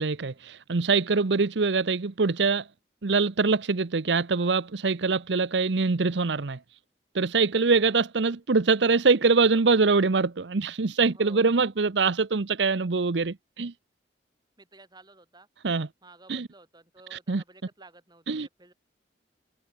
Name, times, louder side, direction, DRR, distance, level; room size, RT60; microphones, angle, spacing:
voice 1, 0.0-2.7 3.0-6.6 7.1-13.7 15.6-15.9 16.3-16.5 17.1-17.4 18.3-18.5, right 4 dB, 80° right, 0.8 m, -24 dB
voice 2, 11.1-11.4 14.6-15.5 16.0-18.7, right 2 dB, 25° right, 7.2 m, -53 dB
head